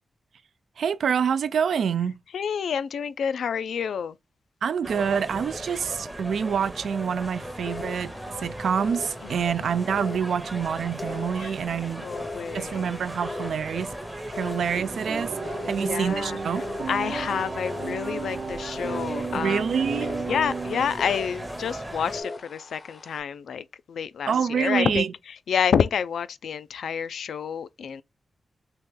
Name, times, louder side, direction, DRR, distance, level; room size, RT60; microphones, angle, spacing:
voice 1, 0.8-2.1 4.6-12.0 12.5-14.0 14.3-16.7 19.3-20.2 24.3-25.1, right 7 dB, 85° right, 0.3 m, -27 dB
voice 2, 2.3-4.2 11.4-11.5 12.0-12.9 15.7-16.4 16.9-19.7 20.3-25.1 25.5-28.0, left 7 dB, 90° left, 0.3 m, -28 dB
sound 1, 4.8-22.2, right 1 dB, 15° right, 0.7 m, -38 dB
sound 2, 7.2-23.2, left 3 dB, 40° left, 0.5 m, -40 dB
sound 3, 14.7-21.4, right 4 dB, 60° right, 0.7 m, -33 dB
3.0 x 2.8 x 3.5 m
wide cardioid pair, 115°, 0 cm